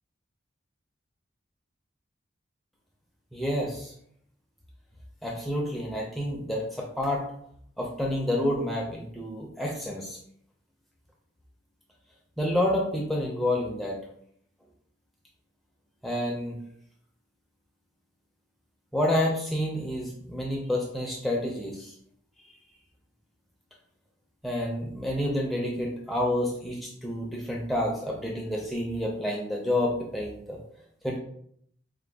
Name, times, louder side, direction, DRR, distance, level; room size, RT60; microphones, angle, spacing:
voice 1, 3.3-3.9 5.2-7.2 7.8-10.2 12.4-14.0 16.0-16.6 18.9-21.9 24.4-30.6 31.0-31.2, left 1 dB, ahead, -2 dB, 0.5 m, -29 dB
4.8 x 2.2 x 3.4 m, 0.66 s
head